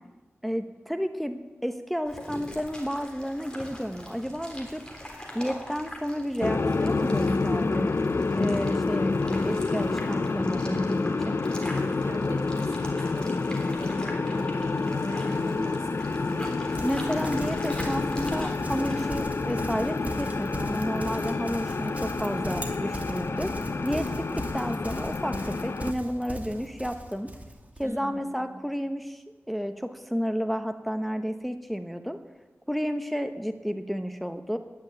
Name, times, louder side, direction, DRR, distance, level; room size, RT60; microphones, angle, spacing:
voice 1, 0.4-4.8 5.3-8.0 8.4-11.4 16.8-23.5 23.8-27.3 27.8-32.2 32.7-34.6, equal, ahead, 7 dB, 1.0 m, -31 dB
sound 1, 2.1-19.1, equal, 20° left, 3.5 m, -43 dB
sound 2, 6.4-25.9, left 3 dB, 60° left, 0.7 m, -28 dB
voice 2, 12.0-16.5 22.5-22.8 27.8-28.5, right 1 dB, 75° right, 2 dB, 3.8 m, -42 dB
Livestock farm animals working animals, 16.7-27.9, right 1 dB, 30° right, 2.4 m, -40 dB
11.0 x 10.5 x 10.0 m, 1.2 s
wide cardioid pair, 55°, 5 cm